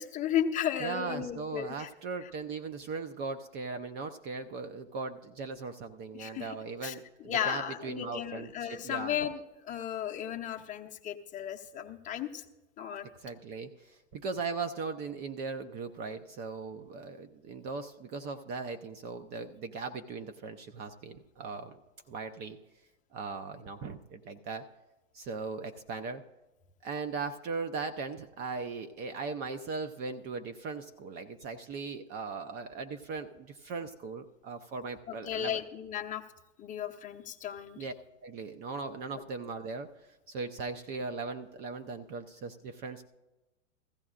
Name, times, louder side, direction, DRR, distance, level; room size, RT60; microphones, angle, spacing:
voice 1, 0.0-1.9 6.2-6.9 7.3-12.4 12.8-13.1 35.3-36.2 36.6-37.8, left 9 dB, 20° left, 3 dB, 0.7 m, -34 dB
voice 2, 0.8-9.2 13.2-21.8 22.1-22.6 23.1-24.7 25.1-26.2 26.8-35.6 37.8-37.9 38.2-39.9 40.3-43.1, right 4 dB, 25° right, 7 dB, 0.5 m, -38 dB
16.0 x 14.5 x 2.4 m, 1.0 s
hypercardioid pair, 115°, 38 cm